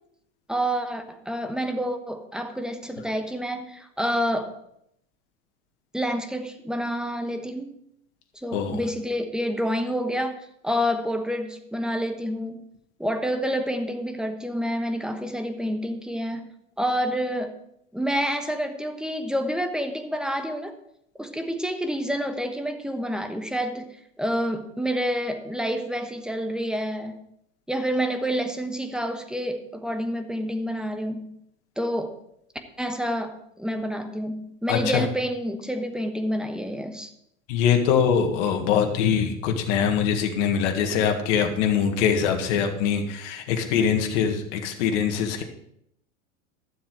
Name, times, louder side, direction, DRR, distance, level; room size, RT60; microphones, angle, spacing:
voice 1, 0.5-4.5 5.9-7.8 8.3-10.4 10.6-12.6 13.0-16.5 16.8-17.5 17.9-20.8 21.2-27.2 27.7-31.4 31.8-32.2 32.8-37.1, equal, ahead, 7 dB, 1.1 m, -28 dB
voice 2, 34.7-35.1 37.5-45.4, left 7 dB, 60° left, 4 dB, 1.8 m, -23 dB
12.5 x 7.3 x 4.8 m, 0.74 s
hypercardioid pair, 100°, 40 cm